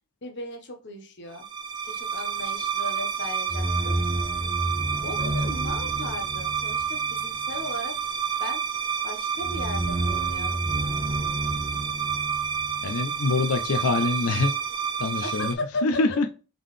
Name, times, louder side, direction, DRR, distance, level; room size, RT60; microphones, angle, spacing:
voice 1, 0.2-1.4 1.8-3.9 5.0-7.9 8.4-8.6 9.0-10.6 15.2-15.8, left 2 dB, 50° left, 4 dB, 0.9 m, -36 dB
sound 1, 1.4-15.5, right 5 dB, 20° right, 0.3 m, -28 dB
voice 2, 12.8-14.5 15.0-15.5 15.8-16.3, left 3 dB, 75° left, 7 dB, 0.5 m, -24 dB
3.8 x 3.7 x 3.2 m, 0.33 s
head